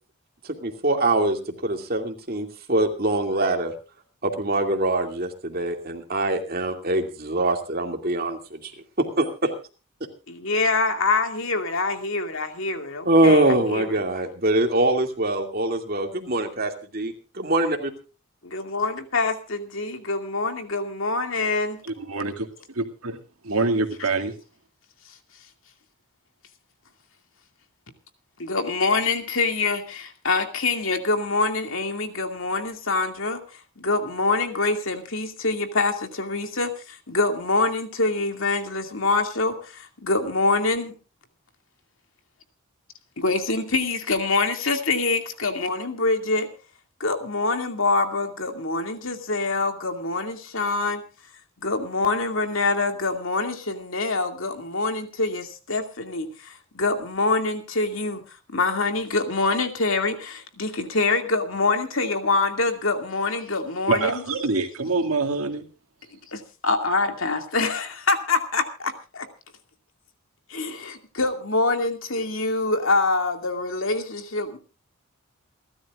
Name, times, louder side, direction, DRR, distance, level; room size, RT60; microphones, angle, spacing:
voice 1, 0.6-3.7 4.2-8.7 9.0-9.5 13.1-17.9, right 2 dB, 45° right, 2.4 m, -23 dB
voice 2, 10.4-14.0 18.5-21.8 28.5-29.8 30.2-33.4 33.8-36.7 37.1-39.5 40.0-40.9 43.2-46.5 47.0-51.0 51.6-55.4 55.7-56.3 56.8-58.2 58.5-60.2 60.6-64.2 66.6-68.6 70.5-70.9 71.2-74.6, left 3 dB, 65° left, 2.4 m, -25 dB
voice 3, 21.8-22.3 22.8-23.2 23.4-24.3 63.9-65.6, right 3 dB, 85° right, 2.3 m, -25 dB
28.5 x 12.5 x 2.4 m
head